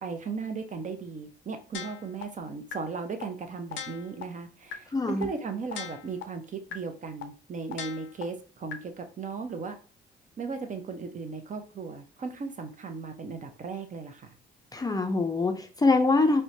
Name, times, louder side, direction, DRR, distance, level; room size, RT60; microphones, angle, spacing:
voice 1, 0.0-9.8 10.4-14.3, right 4 dB, 40° right, 6 dB, 0.6 m, -36 dB
sound 1, 1.7-2.2 2.7-2.8 3.2-3.3 3.7-4.2 4.7-4.8 5.2-5.3 5.7-6.2 6.7-6.8 7.2-7.3 7.7-8.2 8.7-8.8, left 10 dB, 70° left, 0.5 m, -38 dB
voice 2, 4.9-5.3 14.7-16.4, left 3 dB, 20° left, 5 dB, 0.4 m, -24 dB
4.4 x 2.1 x 2.7 m, 0.38 s
cardioid pair, 90°, 20 cm